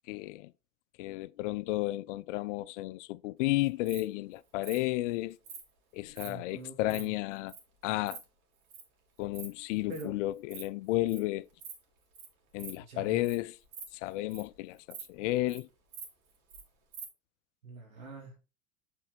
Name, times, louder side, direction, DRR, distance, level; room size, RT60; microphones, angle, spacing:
voice 1, 0.1-0.5 1.0-5.4 5.9-7.6 7.8-8.2 9.2-11.5 12.5-13.6 13.9-15.7, left 17 dB, 65° left, 0.5 m, -32 dB
Insect, 3.6-4.0 4.6-4.8 5.4-5.6 6.1-6.3 6.6-7.0 7.5-7.6 7.9-8.2 8.7-8.8 9.2-9.5 9.7-10.0 10.4-10.6 10.9-11.2 11.6-11.8 12.1-12.3 12.6-12.7 13.1-13.3 13.6-14.5 14.9-15.0 15.3-15.6 15.9-16.6 16.9-17.1, right 6 dB, 50° right, 3.1 m, -45 dB
voice 2, 6.2-7.1 9.9-10.2 12.8-13.2 17.6-18.4, right 3 dB, 90° right, 2.8 m, -44 dB
7.5 x 4.6 x 4.0 m
hypercardioid pair, 85°, 40 cm